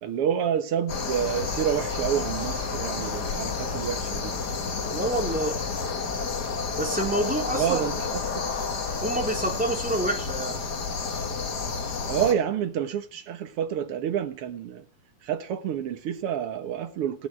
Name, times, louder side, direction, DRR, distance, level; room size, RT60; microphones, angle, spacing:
voice 1, 0.0-4.3 7.5-8.0 12.1-14.8 15.2-17.3, right 9 dB, 55° right, 2.1 m, -28 dB
sound 1, 0.9-12.3, left 4 dB, 40° left, 2.0 m, -30 dB
voice 2, 4.9-5.6 6.7-7.9 9.0-10.6, right 1 dB, 5° right, 3.9 m, -27 dB
17.0 x 10.5 x 7.9 m
omnidirectional pair, 3.3 m